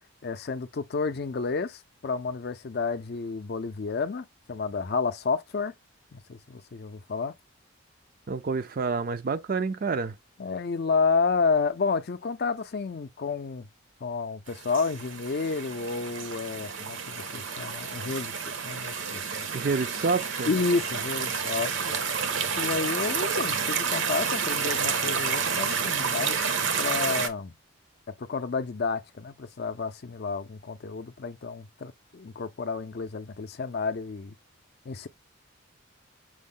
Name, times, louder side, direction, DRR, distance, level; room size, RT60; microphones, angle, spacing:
voice 1, 0.2-5.7 6.1-7.3 10.4-13.7 14.0-19.5 20.5-22.0 22.6-27.5 28.2-34.3 34.8-35.1, left 4 dB, 50° left, 0.4 m, -30 dB
voice 2, 8.3-10.1 19.5-20.5, right 4 dB, 45° right, 0.4 m, -28 dB
sound 1, 14.5-27.3, right 6 dB, 60° right, 0.7 m, -30 dB
6.2 x 2.1 x 3.7 m
head